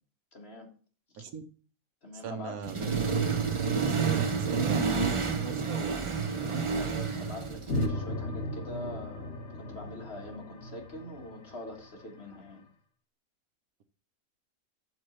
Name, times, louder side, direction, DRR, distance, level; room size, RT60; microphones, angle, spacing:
voice 1, 0.3-0.7 1.2-1.3 2.0-2.6 6.7-12.6, left 2 dB, 45° left, 0 dB, 2.0 m, -43 dB
voice 2, 2.2-3.1 3.8-6.1 6.4-6.6, right 7 dB, 85° right, 9 dB, 1.3 m, -40 dB
Accelerating revving vroom, 2.6-7.9, right 5 dB, 35° right, 0.5 m, -29 dB
sound 1, 7.7-12.4, left 1 dB, 80° left, 2.0 m, -36 dB
6.3 x 4.5 x 6.5 m, 0.41 s
omnidirectional pair, 1.5 m